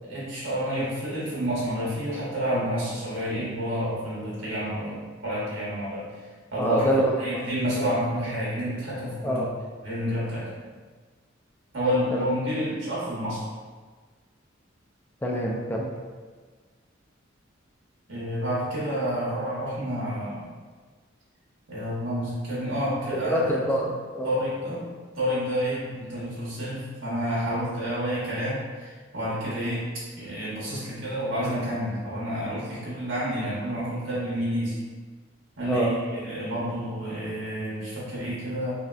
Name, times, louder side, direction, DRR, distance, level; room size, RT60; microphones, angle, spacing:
voice 1, 0.0-6.1 6.5-9.4 9.8-10.7 11.7-13.4 18.1-20.5 21.7-23.8 24.2-24.8 25.1-29.8 30.2-34.7 35.6-38.7, equal, 90° right, -8 dB, 1.0 m, -29 dB
voice 2, 6.6-7.0 9.2-9.5 12.1-12.2 15.2-15.9 23.3-24.3 35.7-35.9, equal, 10° left, -2 dB, 0.3 m, -25 dB
3.0 x 2.7 x 2.3 m, 1.4 s
head